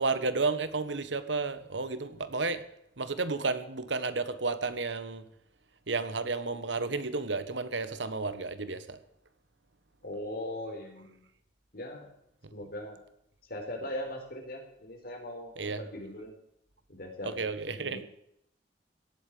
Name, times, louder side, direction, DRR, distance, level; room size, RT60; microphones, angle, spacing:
voice 1, 0.0-2.6 3.0-5.2 5.9-9.0 15.6-15.8 17.2-18.0, right 3 dB, 85° right, 13 dB, 1.4 m, -32 dB
voice 2, 10.0-11.3 11.7-12.1 12.5-13.0 13.5-16.3 16.9-18.0, left 1 dB, 55° left, 3 dB, 4.4 m, -40 dB
17.0 x 8.5 x 7.8 m, 0.76 s
head